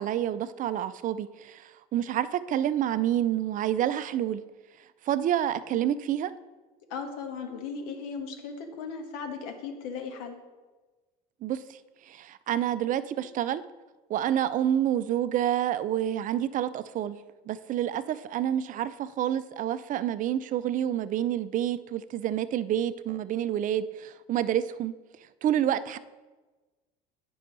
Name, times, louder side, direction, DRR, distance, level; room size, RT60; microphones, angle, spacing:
voice 1, 0.0-4.4 5.0-6.3 11.4-11.8 12.0-13.6 14.1-17.2 17.5-24.9 25.4-26.0, right 11 dB, 45° right, 14 dB, 0.4 m, -28 dB
voice 2, 6.9-10.4, left 5 dB, 80° left, 5 dB, 1.2 m, -37 dB
9.2 x 5.5 x 4.0 m, 1.3 s
supercardioid pair, 85°, 19 cm